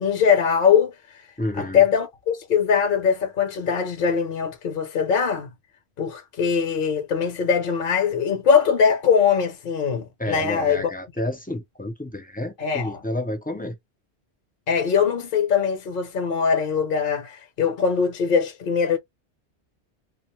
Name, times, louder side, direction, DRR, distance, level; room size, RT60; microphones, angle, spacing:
voice 1, 0.0-1.2 1.6-5.5 6.0-10.9 12.6-13.0 14.7-19.0, left 6 dB, 55° left, 0.8 m, -21 dB
voice 2, 1.4-1.8 10.2-13.8, left 1 dB, 10° left, 0.5 m, -30 dB
2.5 x 2.3 x 2.9 m
omnidirectional pair, 1.1 m